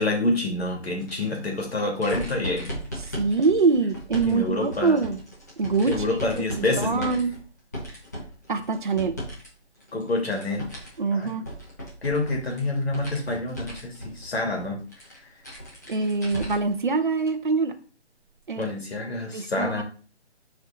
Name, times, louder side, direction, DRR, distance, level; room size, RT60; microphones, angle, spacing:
voice 1, 0.0-2.7 4.2-5.0 5.9-7.1 9.9-10.7 11.1-11.3 12.0-14.8 18.5-19.8, left 2 dB, 60° left, 0 dB, 2.8 m, -27 dB
sound 1, 1.0-9.5 9.8-16.8 17.2-17.3 18.5-18.6, equal, 15° left, 1.1 m, -37 dB
voice 2, 3.1-5.2 5.6-6.0 6.3-7.3 8.5-9.2 11.0-11.4 15.9-17.7 18.5-18.7 19.3-19.8, right 4 dB, 45° right, 5 dB, 0.8 m, -24 dB
7.2 x 4.6 x 3.9 m, 0.39 s
hypercardioid pair, 175°, 34 cm